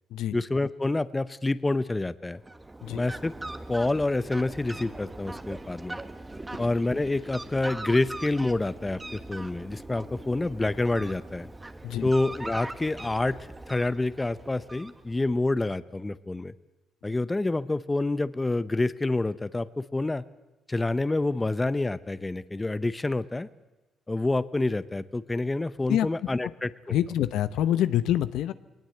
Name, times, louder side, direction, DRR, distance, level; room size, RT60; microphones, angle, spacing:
voice 1, 0.3-2.4 2.9-3.3 3.7-6.0 6.6-11.5 12.0-13.4 13.7-16.5 17.0-20.2 20.7-23.5 24.1-26.9, left 2 dB, 15° left, 15 dB, 0.8 m, -27 dB
Fowl, 2.4-15.4, right 2 dB, 15° right, 1.3 m, -41 dB
voice 2, 26.9-28.5, left 11 dB, 85° left, 14 dB, 0.8 m, -26 dB
21.5 x 19.5 x 7.9 m, 1.1 s
cardioid pair, 90°, 0 cm